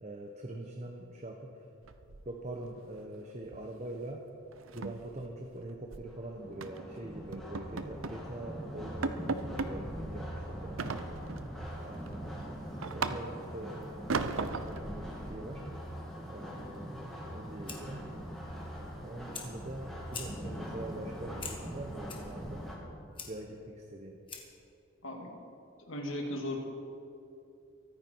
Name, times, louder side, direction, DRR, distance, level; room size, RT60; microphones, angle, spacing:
voice 1, 0.0-1.6 2.2-4.2 4.7-10.9 11.8-13.9 14.2-15.6 16.3-18.0 19.0-22.7 23.3-24.2, right 1 dB, 35° right, 2 dB, 1.0 m, -43 dB
sound 1, 1.8-2.7 2.9-3.2 3.5-3.7 4.0-4.1 4.5-6.1 6.6-6.9 7.3-8.3 8.6-8.7 9.0-9.8 10.8-11.5 11.9-13.6 14.1-14.9, right 4 dB, 80° right, 0.7 m, -37 dB
sound 2, 6.1-22.8, equal, ahead, 2.8 m, -42 dB
Fire, 17.2-24.7, left 5 dB, 25° left, 1.7 m, -49 dB
voice 2, 25.0-25.4 25.9-26.6, left 1 dB, 75° left, 1 dB, 2.5 m, -37 dB
23.5 x 9.6 x 4.6 m, 2.6 s
head